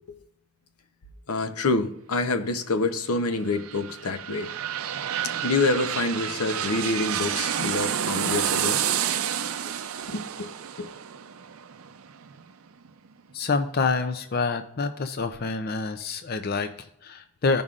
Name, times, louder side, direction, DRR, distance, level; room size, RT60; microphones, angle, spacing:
voice 1, 1.3-4.5 5.4-8.8 10.1-10.5 10.8-10.9, left 3 dB, 85° left, 8 dB, 0.8 m, -27 dB
sound 1, 3.3-12.9 13.3-13.4, right 9 dB, 70° right, 0.5 m, -30 dB
voice 2, 13.3-17.6, left 4 dB, 45° left, 7 dB, 0.5 m, -27 dB
16.0 x 5.3 x 2.4 m, 0.78 s
head